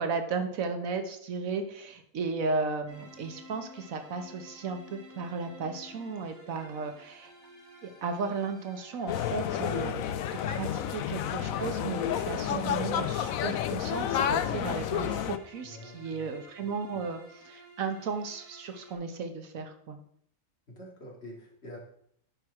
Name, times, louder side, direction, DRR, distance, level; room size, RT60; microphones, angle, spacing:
voice 1, 0.0-7.3 7.8-20.0, right 4 dB, 80° right, 7 dB, 1.4 m, -35 dB
sound 1, 2.9-18.9, equal, 10° left, 2.2 m, -53 dB
sound 2, 9.1-15.4, left 10 dB, 85° left, 1.0 m, -30 dB
voice 2, 15.6-16.2 20.7-21.8, left 1 dB, 50° left, -2 dB, 2.5 m, -46 dB
10.5 x 4.6 x 4.8 m, 0.66 s
omnidirectional pair, 1.4 m